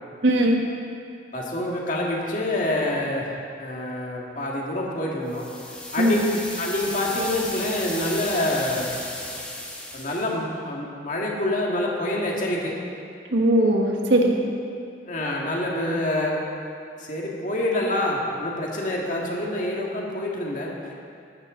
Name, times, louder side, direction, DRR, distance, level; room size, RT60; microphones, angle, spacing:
voice 1, 0.2-0.6 6.0-6.2 13.3-14.4, right 1 dB, 85° right, 0 dB, 1.6 m, -19 dB
voice 2, 1.3-3.3 3.6-5.5 5.9-8.9 9.9-12.7 15.1-16.4 17.0-20.9, left 1 dB, 45° left, -2 dB, 1.9 m, -26 dB
sound 1, 5.3-10.3, left 1 dB, 5° left, 1.3 m, -35 dB
13.5 x 12.0 x 3.8 m, 2.5 s
head